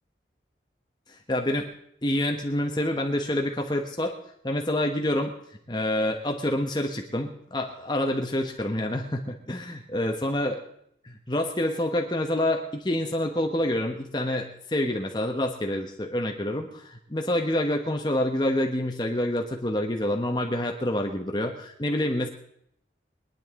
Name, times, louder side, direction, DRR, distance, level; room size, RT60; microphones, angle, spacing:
voice 1, 1.1-1.7 2.0-4.1 4.4-5.3 5.7-10.6 11.0-22.3, left 1 dB, 25° left, 2 dB, 1.2 m, -27 dB
23.0 x 10.0 x 3.8 m, 0.71 s
head